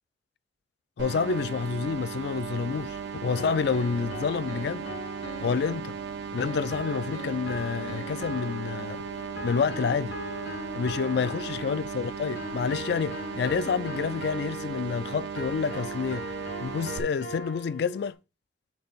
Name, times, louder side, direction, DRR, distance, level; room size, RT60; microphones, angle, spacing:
voice 1, 1.0-4.9 5.4-6.0 6.3-9.0 9.4-10.2 10.7-16.3 16.6-18.1, left 5 dB, 55° left, 0.3 m, -29 dB
sound 1, 1.0-17.0, right 6 dB, 60° right, 0.6 m, -37 dB
sound 2, 2.6-18.1, left 1 dB, 80° left, 2.2 m, -40 dB
7.5 x 3.8 x 4.0 m
head